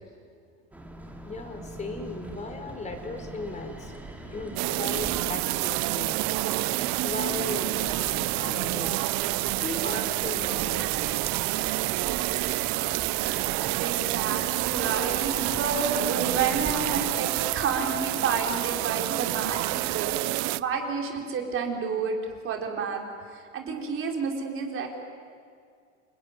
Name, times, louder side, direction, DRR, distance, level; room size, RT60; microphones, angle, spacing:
sound 1, 0.7-20.2, right 1 dB, 5° right, 3.2 m, -43 dB
voice 1, 1.2-3.9 4.3-6.2 6.8-9.1 9.5-10.9, left 3 dB, 20° left, 6 dB, 4.3 m, -37 dB
sound 2, 4.6-20.6, right 21 dB, 50° right, 0.7 m, -28 dB
voice 2, 13.8-22.2 22.4-23.0 23.3-24.9, right 5 dB, 35° right, 1 dB, 4.6 m, -30 dB
29.0 x 20.0 x 9.8 m, 2.2 s
supercardioid pair, 125°, 36 cm